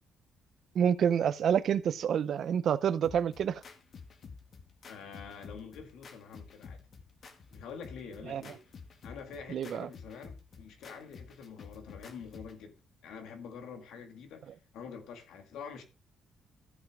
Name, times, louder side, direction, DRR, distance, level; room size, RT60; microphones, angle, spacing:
voice 1, 0.7-3.6 8.3-8.4 9.5-9.9, right 8 dB, 65° right, 0.6 m, -28 dB
sound 1, 3.0-12.6, left 5 dB, 55° left, 1.7 m, -50 dB
voice 2, 4.9-6.9 7.2-8.7 9.0-12.8 13.0-15.8, left 6 dB, 85° left, 2.0 m, -46 dB
14.0 x 5.9 x 3.6 m
cardioid pair, 90°, 0 cm